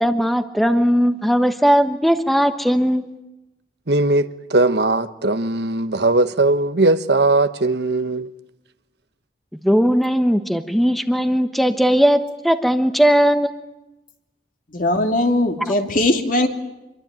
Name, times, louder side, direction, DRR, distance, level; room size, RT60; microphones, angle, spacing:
voice 1, 0.0-3.0 9.6-13.5, equal, ahead, 1.2 m, -18 dB
voice 2, 3.9-8.3, right 2 dB, 70° right, 1.3 m, -19 dB
voice 3, 14.7-16.5, left 1 dB, 50° left, 2.9 m, -19 dB
27.0 x 23.5 x 9.1 m
head